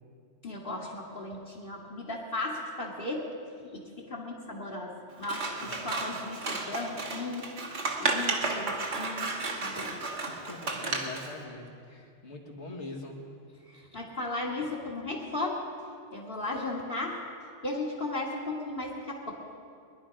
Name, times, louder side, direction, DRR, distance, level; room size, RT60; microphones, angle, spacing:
voice 1, 0.4-3.2 3.7-7.5 8.0-10.0 13.7-15.6 16.1-17.2 17.6-19.6, left 2 dB, 50° left, -2 dB, 1.9 m, -36 dB
Scissors, 5.2-11.3, right 3 dB, 75° right, 1.7 m, -33 dB
voice 2, 10.3-13.2, left 2 dB, 75° left, -1 dB, 2.3 m, -43 dB
21.5 x 11.0 x 5.1 m, 2.4 s
omnidirectional pair, 1.2 m